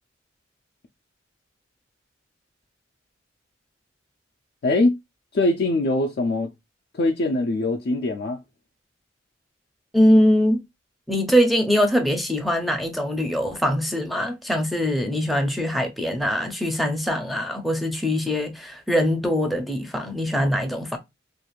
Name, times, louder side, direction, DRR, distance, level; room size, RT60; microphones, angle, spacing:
voice 1, 4.6-5.0 5.3-6.5 6.9-8.4, left 2 dB, 55° left, 0.4 m, -22 dB
voice 2, 9.9-10.6 11.1-21.0, equal, ahead, 0.5 m, -22 dB
2.5 x 2.3 x 3.0 m
head